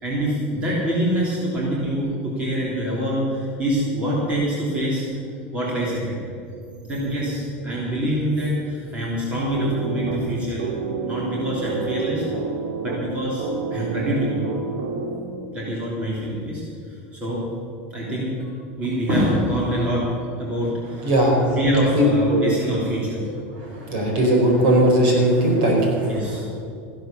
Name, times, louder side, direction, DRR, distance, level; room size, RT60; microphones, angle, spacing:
voice 1, 0.0-5.0 5.5-6.2 6.8-10.7 11.0-12.2 12.8-13.4 13.7-14.5 15.5-16.6 17.1-17.4 17.9-18.5 18.8-20.1 20.4-20.7 21.6-23.2 26.1-26.5, equal, 20° right, -5 dB, 3.3 m, -25 dB
sound 1, 9.5-15.5, right 4 dB, 80° right, 2.5 m, -29 dB
voice 2, 21.0-21.5 21.9-22.0 22.3-22.4 23.6-26.1, right 1 dB, 55° right, 0 dB, 4.6 m, -18 dB
15.0 x 11.5 x 6.9 m, 2.6 s
supercardioid pair, 175°, 6 cm